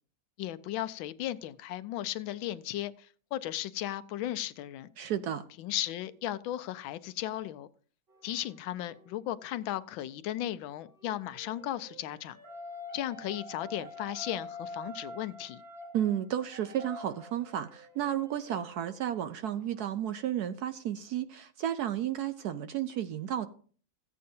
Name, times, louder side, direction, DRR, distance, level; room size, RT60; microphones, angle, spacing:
voice 1, 0.4-4.9 5.6-7.7 8.2-12.4 12.9-15.6, left 13 dB, 90° left, 1.4 m, -36 dB
voice 2, 5.0-5.4 15.9-23.5, right 10 dB, 70° right, 0.9 m, -32 dB
sound 1, 8.1-9.6 10.8-19.9, left 1 dB, 35° right, 1.2 m, -47 dB
15.5 x 8.5 x 2.7 m
omnidirectional pair, 2.1 m